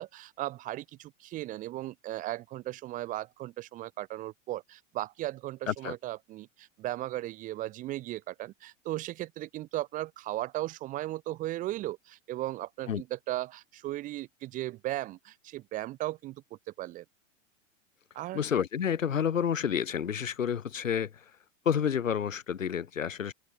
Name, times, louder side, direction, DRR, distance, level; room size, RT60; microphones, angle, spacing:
voice 1, 0.0-16.4 16.8-17.0 18.1-18.4, right 15 dB, 20° right, 0.5 m, -36 dB
voice 2, 18.3-21.1 21.7-23.3, left 8 dB, 80° left, 0.8 m, -29 dB
open air
figure-of-eight pair, 95°, 39 cm